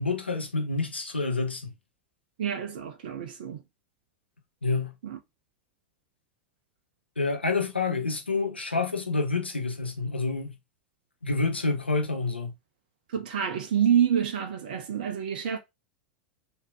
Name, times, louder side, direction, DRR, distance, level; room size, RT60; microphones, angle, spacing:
voice 1, 0.0-1.7 4.6-4.9 7.2-10.5 11.2-12.5, left 3 dB, 85° left, 1.0 m, -28 dB
voice 2, 2.4-3.6 5.0-5.2 13.1-15.6, right 9 dB, 60° right, 0.9 m, -27 dB
4.4 x 3.0 x 3.5 m
figure-of-eight pair, 90°, 6 cm